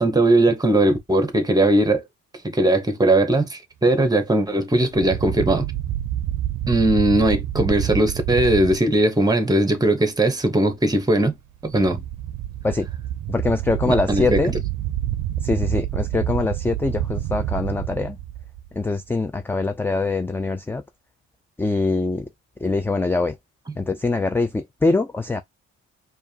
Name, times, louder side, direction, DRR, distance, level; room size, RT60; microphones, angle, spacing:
voice 1, 0.0-2.0 2.4-5.7 6.7-11.4 11.6-12.0 13.8-14.4, right 1 dB, 10° right, 1.1 m, -19 dB
sound 1, 4.9-8.8 11.6-18.9, right 12 dB, 75° right, 0.5 m, -28 dB
voice 2, 13.3-14.5 15.4-18.2 18.7-20.8 21.6-22.3 22.6-23.4 23.8-25.4, left 3 dB, 10° left, 0.3 m, -23 dB
4.6 x 2.5 x 2.8 m
cardioid pair, 90°, 30 cm